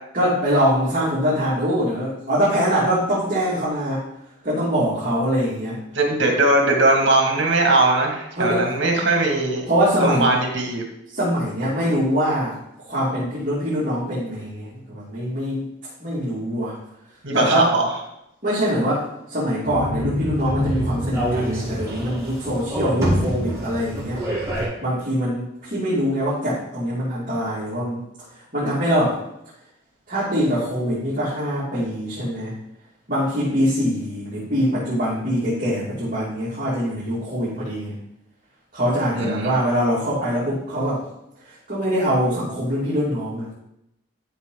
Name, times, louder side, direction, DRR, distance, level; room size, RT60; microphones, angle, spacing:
voice 1, 0.1-4.0 4.4-5.8 8.4-8.7 9.7-10.3 11.1-12.6 12.9-15.7 16.0-16.7 17.3-17.6 18.4-24.2 24.8-28.0 28.5-29.2 30.1-32.5 33.1-37.9 38.7-41.0 41.7-43.5, equal, 40° right, -9 dB, 2.8 m, -23 dB
voice 2, 5.9-9.6 10.0-10.8 17.2-17.9 39.1-39.5, right 2 dB, 65° right, 1 dB, 2.2 m, -19 dB
sound 1, 19.6-24.7, equal, 15° right, 3.7 m, -26 dB
12.5 x 5.3 x 4.0 m, 0.82 s
head